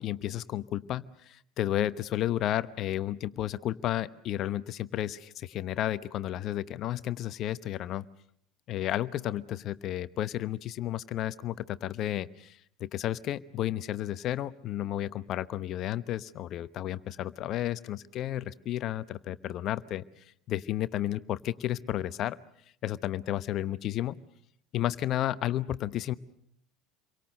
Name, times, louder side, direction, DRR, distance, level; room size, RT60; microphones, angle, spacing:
voice 1, 0.0-8.0 8.7-20.0 20.5-22.4 22.8-24.2 24.7-26.1, left 13 dB, 50° left, 16 dB, 0.9 m, -32 dB
28.0 x 23.5 x 6.6 m, 0.67 s
figure-of-eight pair, 70°, 0 cm